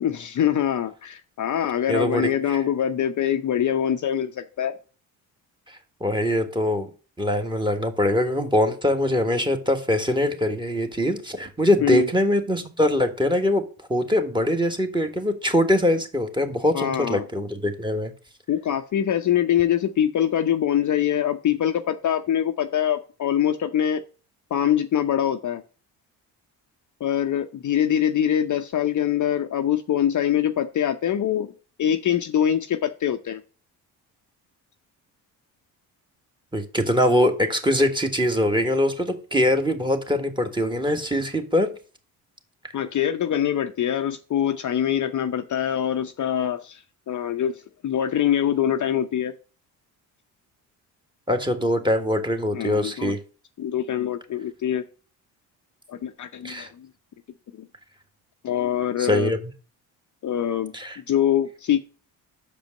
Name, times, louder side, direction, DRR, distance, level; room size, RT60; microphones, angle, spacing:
voice 1, 0.0-4.7 11.8-12.1 16.7-17.2 18.5-24.0 24.5-25.6 27.0-31.5 31.8-33.4 42.7-49.3 52.5-53.1 53.6-54.8 55.9-56.9 57.5-57.7 58.4-59.3 60.2-60.7 61.1-61.8, left 10 dB, 45° left, 0.7 m, -24 dB
voice 2, 1.9-2.6 5.7-6.9 7.2-13.6 13.9-18.1 36.5-41.7 51.3-53.2 56.4-56.7 59.0-59.4 60.7-61.0, left 1 dB, 10° right, 1.5 m, -23 dB
6.3 x 5.2 x 6.4 m
supercardioid pair, 60°, 43 cm